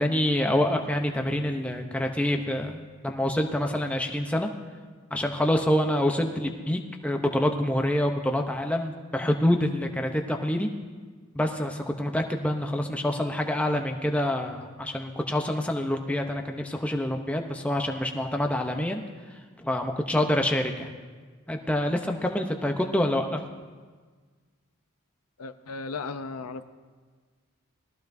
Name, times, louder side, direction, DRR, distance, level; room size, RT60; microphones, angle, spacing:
voice 1, 0.0-4.5 5.1-10.7 11.3-19.0 19.6-20.9 21.5-23.4, left 1 dB, 5° left, 3 dB, 0.6 m, -26 dB
voice 2, 25.4-26.6, left 4 dB, 90° left, 10 dB, 0.6 m, -35 dB
19.0 x 14.0 x 2.6 m, 1.5 s
head